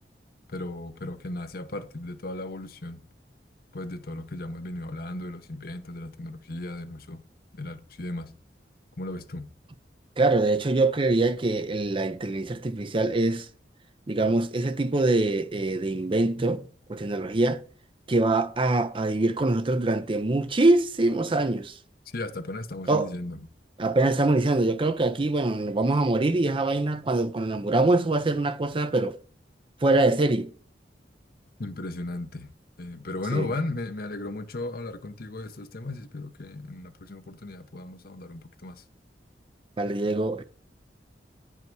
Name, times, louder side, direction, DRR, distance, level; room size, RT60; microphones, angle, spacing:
voice 1, 0.5-3.0 3.7-7.2 7.5-8.3 9.0-9.5 22.1-23.5 31.6-32.5 32.8-38.8, left 2 dB, 60° left, 0.9 m, -35 dB
voice 2, 10.2-13.5 14.1-16.6 16.9-17.6 18.1-21.7 22.9-23.1 23.8-29.2 29.8-30.5 33.3-33.5 39.8-40.4, right 2 dB, 30° right, 0.6 m, -24 dB
9.2 x 5.6 x 4.6 m
head